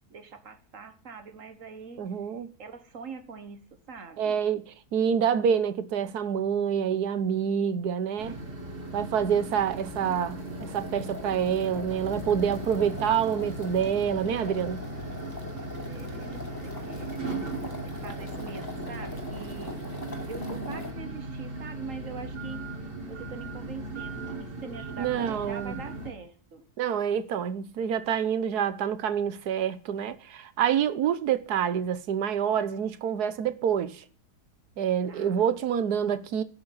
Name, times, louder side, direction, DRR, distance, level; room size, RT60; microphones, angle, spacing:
voice 1, 0.1-2.0 2.6-4.4 15.5-17.1 17.5-19.8 20.3-22.6 23.1-26.7 35.1-35.4, right 5 dB, 55° right, 1.6 m, -43 dB
voice 2, 2.0-2.5 4.2-8.4 8.9-14.8 25.0-25.8 26.8-34.0 34.8-36.4, right 8 dB, 80° right, 1.5 m, -27 dB
sound 1, 7.8-20.9, left 1 dB, 15° left, 2.6 m, -41 dB
sound 2, 8.2-26.1, right 2 dB, 35° right, 2.0 m, -38 dB
11.5 x 6.7 x 9.7 m
omnidirectional pair, 1.7 m